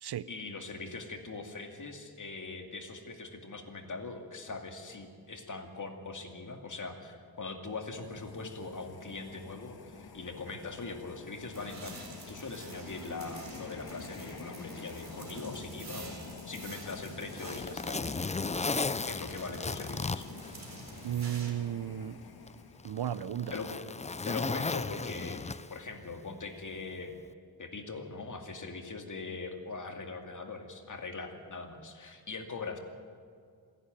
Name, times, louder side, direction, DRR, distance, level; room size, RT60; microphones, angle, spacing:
voice 1, 0.3-18.2 19.0-20.3 23.5-23.8 24.3-25.4 25.7-27.2 27.6-32.8, left 3 dB, 50° left, 4 dB, 2.4 m, -41 dB
Simulated jet engine burner, 7.7-23.1, left 5 dB, 70° left, 1.7 m, -49 dB
sound 1, 11.5-21.5, right 2 dB, 45° right, 4.1 m, -48 dB
Zipper (clothing), 16.7-21.2 21.6-21.7 22.5-25.9 27.1-27.3, left 4 dB, 20° left, 0.4 m, -35 dB
voice 2, 21.0-22.2 22.8-23.5, right 10 dB, 80° right, 16 dB, 0.7 m, -34 dB
27.0 x 11.0 x 9.2 m, 2.1 s
wide cardioid pair, 95°, 38 cm